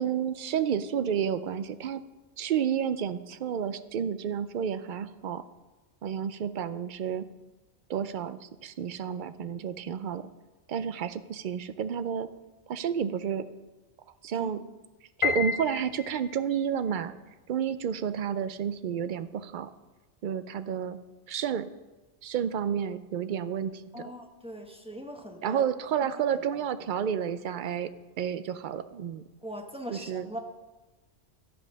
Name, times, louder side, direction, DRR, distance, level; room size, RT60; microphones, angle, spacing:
voice 1, 0.0-2.0 2.4-5.4 6.0-7.3 7.9-10.2 10.7-12.3 12.7-13.4 14.2-14.6 15.2-17.1 17.5-19.7 20.2-21.0 21.3-21.7 22.2-24.1 25.4-27.9 28.2-29.2 29.9-30.3, right 8 dB, 55° right, 13 dB, 0.6 m, -30 dB
Piano, 15.2-16.5, left 7 dB, 40° left, 0.5 m, -30 dB
voice 2, 23.9-25.7 26.0-26.9 29.4-30.4, equal, 5° right, 2 dB, 1.0 m, -41 dB
12.5 x 5.4 x 6.3 m, 1.2 s
omnidirectional pair, 1.2 m